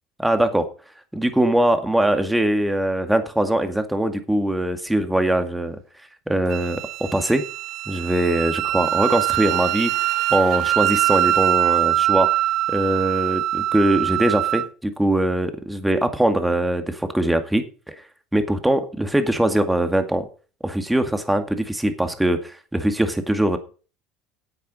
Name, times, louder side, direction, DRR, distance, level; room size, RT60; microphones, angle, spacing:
voice 1, 0.2-0.7 1.1-5.8 6.3-6.8 7.1-7.4 7.9-10.0 10.3-12.3 12.7-17.9 18.3-20.3 20.6-23.6, right 1 dB, 5° right, 7 dB, 2.1 m, -21 dB
Wind instrument woodwind instrument, 6.5-14.7, right 14 dB, 60° right, 0.6 m, -23 dB
9.9 x 8.3 x 6.4 m, 0.37 s
supercardioid pair, 100°, 0 cm